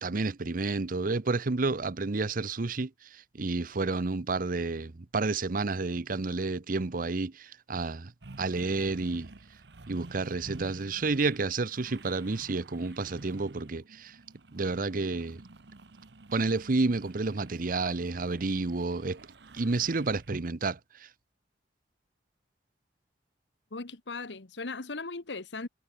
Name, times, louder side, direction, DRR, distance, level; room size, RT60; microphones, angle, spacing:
voice 1, 0.0-8.1 8.4-9.3 9.9-14.2 14.5-15.4 16.3-19.2 19.5-21.1, right 3 dB, 50° right, 0.8 m, -30 dB
sound 1, 8.2-20.5, right 2 dB, 70° right, 1.1 m, -50 dB
voice 2, 23.7-25.7, left 3 dB, 85° left, 1.4 m, -38 dB
head